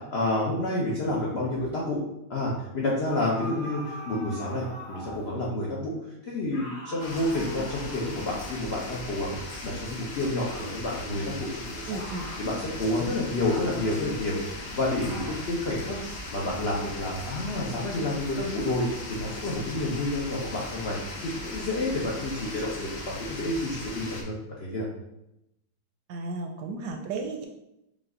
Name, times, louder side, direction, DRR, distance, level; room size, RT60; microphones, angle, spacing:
voice 1, 0.1-2.0 2.3-5.9 6.2-12.0 12.4-16.0 16.3-24.9, left 1 dB, 80° left, -4 dB, 0.5 m, -29 dB
sound 1, 3.1-5.4 6.5-8.8 10.4-10.8 12.0-12.5 13.4-13.9 15.0-15.5, equal, 20° left, 1.2 m, -42 dB
sound 2, 7.0-24.2, left 2 dB, 55° left, 0.9 m, -39 dB
voice 2, 11.9-12.3 26.1-27.5, right 3 dB, 75° right, 3 dB, 1.0 m, -34 dB
5.2 x 2.5 x 3.7 m, 0.86 s
omnidirectional pair, 2.1 m